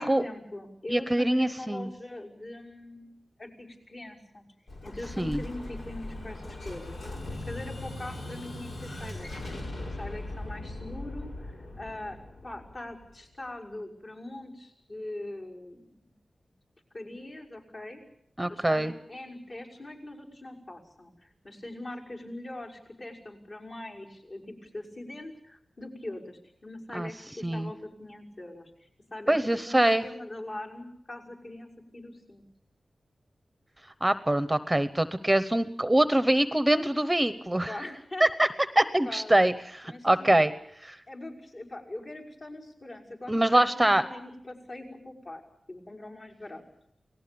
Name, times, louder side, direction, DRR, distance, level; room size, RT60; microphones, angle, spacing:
voice 1, 0.0-4.4 4.8-7.1 7.5-9.3 9.9-16.1 16.9-18.0 18.5-32.4 37.7-38.3 39.0-39.3 39.8-40.6 41.1-45.4 45.7-46.6, left 1 dB, 50° left, -2 dB, 5.9 m, -42 dB
voice 2, 0.9-1.9 5.2-5.4 18.4-18.9 26.9-27.1 27.4-27.7 29.3-30.0 34.0-37.7 38.2-38.5 38.7-40.5 40.8-41.0 43.3-44.0, right 1 dB, 10° right, 12 dB, 0.9 m, -24 dB
Explosion, 4.7-13.3, left 2 dB, 85° left, 5.7 m, -39 dB
29.0 x 19.0 x 6.9 m, 0.69 s
wide cardioid pair, 105°, 0 cm